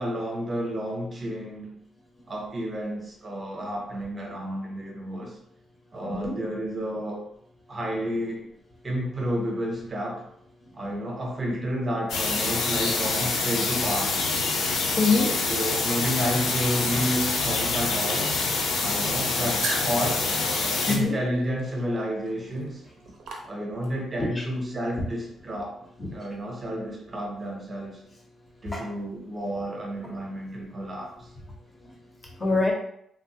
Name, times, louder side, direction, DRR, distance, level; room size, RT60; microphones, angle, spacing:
voice 1, 0.0-1.7 2.3-5.4 5.9-7.3 7.7-8.5 8.8-10.2 10.7-14.3 15.5-18.4 18.8-20.3 20.7-22.8 23.4-25.8 26.1-28.0 28.6-31.1, equal, 25° right, -1 dB, 0.7 m, -31 dB
voice 2, 6.0-6.4 15.0-15.4 18.7-18.9 20.6-21.2 24.2-24.4 26.0-26.2 28.6-28.8 31.8-31.9 32.4-32.7, left 3 dB, 20° left, 0 dB, 0.6 m, -26 dB
sound 1, 12.1-21.0, left 3 dB, 80° left, 0.5 m, -26 dB
sound 2, 19.6-24.1, right 3 dB, 80° right, 0.6 m, -38 dB
3.3 x 2.0 x 2.7 m, 0.71 s
cardioid pair, 165°, 0 cm